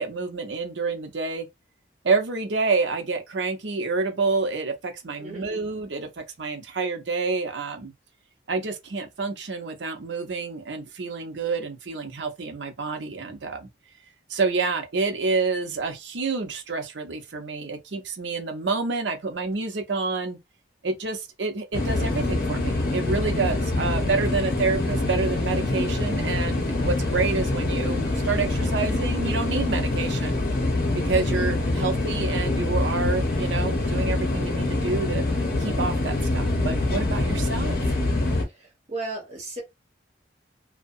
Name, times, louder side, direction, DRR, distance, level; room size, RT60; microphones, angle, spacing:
voice 1, 0.0-1.5 2.0-7.9 8.5-13.7 14.3-20.4 20.8-30.4 30.9-35.3 35.6-37.8, right 4 dB, 80° right, 0.7 m, -28 dB
voice 2, 5.2-5.6 38.5-39.6, right 2 dB, 35° right, 1.1 m, -37 dB
sound 1, 21.7-38.4, left 2 dB, 50° left, 0.7 m, -25 dB
2.7 x 2.1 x 2.5 m
head